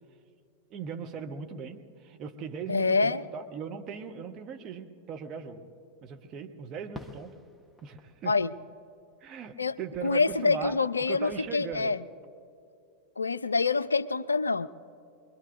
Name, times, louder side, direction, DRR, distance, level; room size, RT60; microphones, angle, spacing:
voice 1, 0.7-5.6 6.0-7.3 7.8-8.3 9.2-10.8 11.1-11.9, right 6 dB, 35° right, 5 dB, 1.1 m, -39 dB
voice 2, 2.7-3.2 8.3-8.5 9.6-9.7 10.0-12.0 13.2-14.7, left 4 dB, 75° left, 16 dB, 0.3 m, -26 dB
Fireworks, 6.9-9.6 9.9-11.8, equal, ahead, 0.9 m, -51 dB
24.5 x 21.5 x 2.7 m, 2.6 s
figure-of-eight pair, 90°, 0 cm